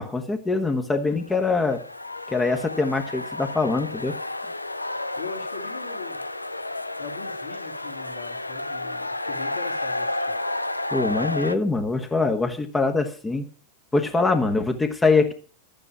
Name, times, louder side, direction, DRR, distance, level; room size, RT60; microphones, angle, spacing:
voice 1, 0.0-1.8 2.3-4.2 10.9-13.4 13.9-15.3, left 3 dB, 10° left, 5 dB, 1.4 m, -23 dB
sound 1, 1.2-11.6, left 2 dB, 85° left, 0.5 m, -31 dB
voice 2, 5.2-6.2 7.0-10.4, left 5 dB, 65° left, 2 dB, 2.5 m, -40 dB
12.0 x 9.1 x 6.1 m, 0.40 s
figure-of-eight pair, 90°, 0 cm